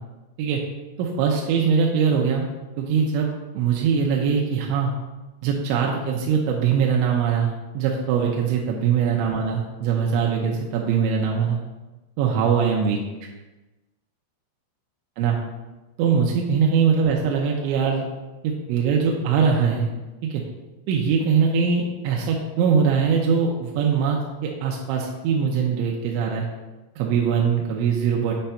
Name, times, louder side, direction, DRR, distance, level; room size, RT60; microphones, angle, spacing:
voice 1, 1.0-2.5 2.8-3.3 3.5-4.9 5.4-11.6 12.2-13.3 15.2-15.4 16.0-18.0 18.4-19.9 20.2-20.4 20.9-26.5 27.0-28.3, right 6 dB, 85° right, -1 dB, 3.1 m, -22 dB
8.7 x 3.3 x 5.6 m, 1.1 s
omnidirectional pair, 5.4 m